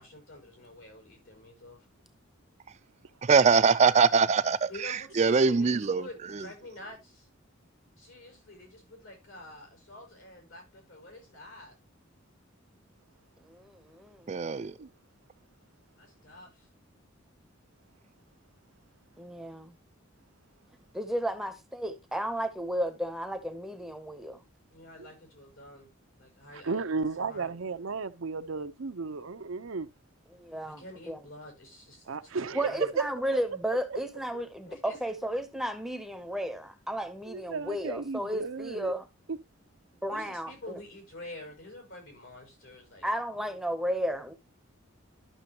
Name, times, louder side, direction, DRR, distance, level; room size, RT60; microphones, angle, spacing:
voice 1, 0.0-1.9 4.7-7.3 8.0-11.8 15.9-16.7 24.7-25.9 26.2-26.9 27.2-27.5 30.6-32.9 34.7-35.0 40.1-43.1 43.3-43.6, left 1 dB, 80° left, 4.9 m, -48 dB
voice 2, 3.2-6.0 14.3-14.7, right 5 dB, 35° right, 0.4 m, -23 dB
voice 3, 13.5-14.3 19.2-19.7 20.9-24.4 30.3-31.2 32.5-39.1 40.0-40.8 43.0-44.3, equal, ahead, 0.7 m, -33 dB
voice 4, 26.6-29.9 32.1-33.0 33.9-34.0 34.3-34.4 37.3-38.9 39.3-39.4, right 4 dB, 85° right, 0.7 m, -34 dB
12.0 x 6.1 x 2.8 m
head